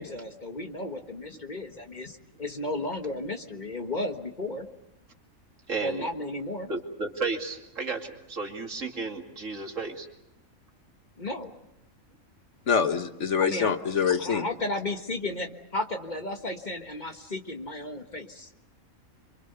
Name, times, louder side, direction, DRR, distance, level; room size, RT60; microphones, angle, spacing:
voice 1, 0.0-4.7 5.8-6.7 11.2-11.5 13.4-13.7 14.2-18.5, left 2 dB, 35° left, 5 dB, 1.5 m, -34 dB
voice 2, 5.7-6.1 6.7-10.1, right 4 dB, 65° right, 3 dB, 2.7 m, -33 dB
voice 3, 12.7-14.4, left 6 dB, 60° left, 8 dB, 1.5 m, -25 dB
28.0 x 24.5 x 6.8 m, 0.88 s
omnidirectional pair, 1.4 m